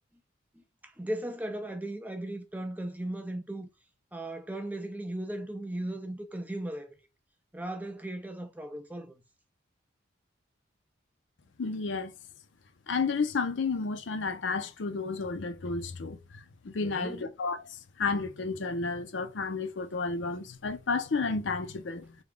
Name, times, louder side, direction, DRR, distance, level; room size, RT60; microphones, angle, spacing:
voice 1, 1.0-3.7 4.1-6.9 7.5-9.2 16.8-17.2, right 1 dB, 10° right, 0.4 m, -37 dB
voice 2, 11.6-12.1 12.9-17.6 18.0-22.2, left 4 dB, 70° left, 0.5 m, -32 dB
3.5 x 2.3 x 3.6 m
head